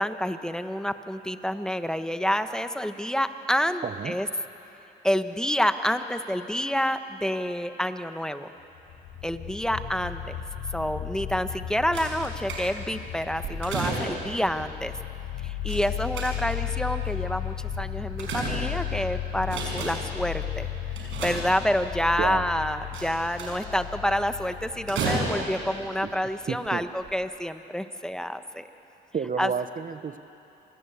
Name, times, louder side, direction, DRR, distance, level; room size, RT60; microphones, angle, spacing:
voice 1, 0.0-4.3 5.0-8.5 9.2-10.4 10.7-14.9 15.4-20.7 21.0-28.6 29.4-29.5, equal, 5° left, 9 dB, 1.3 m, -28 dB
voice 2, 3.8-4.2 22.2-22.4 26.0-26.1 26.5-26.8 29.1-30.2, right 6 dB, 40° right, 13 dB, 0.9 m, -30 dB
sound 1, 8.7-26.1, left 11 dB, 80° left, 3.0 m, -35 dB
sound 2, 11.9-13.0 13.4-14.4 15.7-16.7 17.7-19.0 19.4-20.2 20.9-21.9 22.9-23.8 24.9-25.7 26.5-26.7 27.0-27.1, right 3 dB, 75° right, 6.0 m, -32 dB
27.0 x 18.5 x 8.2 m, 2.9 s
supercardioid pair, 60°, 20 cm